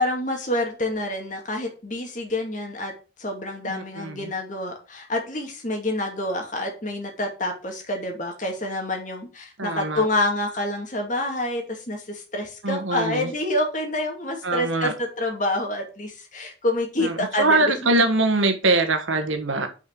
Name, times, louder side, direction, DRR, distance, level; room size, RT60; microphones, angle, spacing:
voice 1, 0.0-2.9 3.2-17.8, left 1 dB, 40° left, 2.2 m, -27 dB
voice 2, 3.6-4.3 9.6-10.1 12.6-13.3 14.4-14.9 17.0-19.7, right 2 dB, 80° right, 1.5 m, -23 dB
6.3 x 5.5 x 6.1 m
head